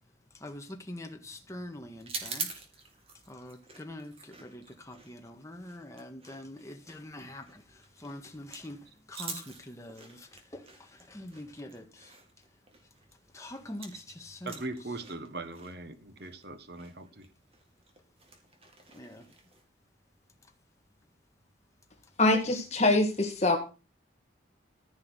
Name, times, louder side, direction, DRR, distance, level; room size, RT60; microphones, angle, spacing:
voice 1, 0.4-2.5 3.3-7.6 8.0-8.8 9.1-12.1 13.3-14.6 18.9-19.2, left 1 dB, 15° left, 1.7 m, -44 dB
sound 1, 2.0-14.1 14.3-19.6, right 4 dB, 30° right, 2.8 m, -46 dB
voice 2, 14.4-17.3, right 2 dB, 55° right, 1.5 m, -40 dB
voice 3, 22.2-23.6, left 2 dB, 35° left, 2.0 m, -24 dB
15.0 x 6.3 x 6.4 m
head